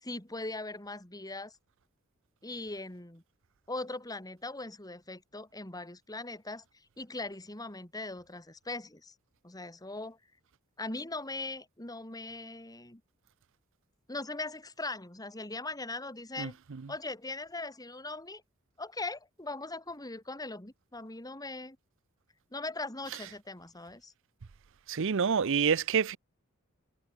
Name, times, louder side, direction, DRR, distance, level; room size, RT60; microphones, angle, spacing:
voice 1, 0.0-1.5 2.4-3.2 3.7-6.6 7.0-9.1 9.4-10.2 10.8-13.0 14.1-16.6 16.9-18.4 18.8-21.8 22.5-24.1, left 2 dB, 15° left, 2.7 m, -40 dB
voice 2, 24.9-26.2, right 6 dB, 65° right, 0.6 m, -27 dB
head